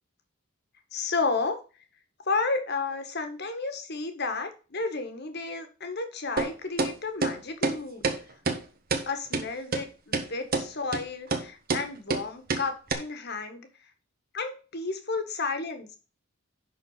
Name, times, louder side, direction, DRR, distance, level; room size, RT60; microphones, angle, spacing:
voice 1, 0.9-1.6 2.3-8.1 9.1-13.7 14.3-15.9, left 4 dB, 50° left, 7 dB, 1.6 m, -32 dB
sound 1, 6.4-6.5 6.8-6.9 7.2-7.3 7.6-7.8 8.0-8.2 8.5-8.6 8.9-9.0 9.3-9.4 9.7-9.8 10.1-10.3 10.5-10.7 10.9-11.0 11.3-11.4 11.7-11.8 12.1-12.2 12.5-12.6 12.9-13.0, right 3 dB, 45° right, 1.3 m, -26 dB
11.0 x 4.3 x 5.6 m, 0.35 s
head